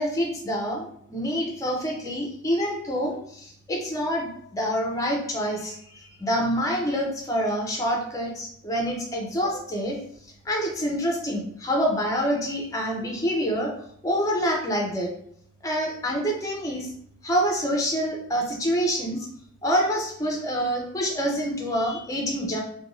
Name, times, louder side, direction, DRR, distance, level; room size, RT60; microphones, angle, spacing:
voice 1, 0.0-10.0 10.5-13.7 14.0-15.1 15.6-16.9 17.2-19.3 19.6-22.6, equal, 15° left, -1 dB, 0.5 m, -26 dB
2.5 x 2.2 x 3.0 m, 0.67 s
head